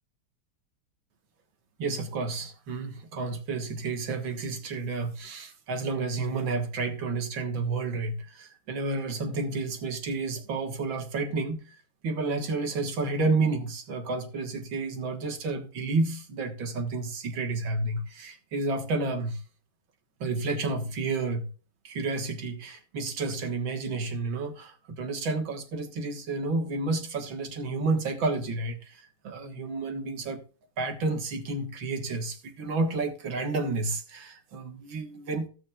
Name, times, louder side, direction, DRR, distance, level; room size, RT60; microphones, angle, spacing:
voice 1, 1.8-11.8 12.0-19.4 20.2-21.5 21.8-30.4 30.8-35.5, right 3 dB, 65° right, 2.2 m, -30 dB
16.0 x 6.3 x 2.4 m
omnidirectional pair, 2.4 m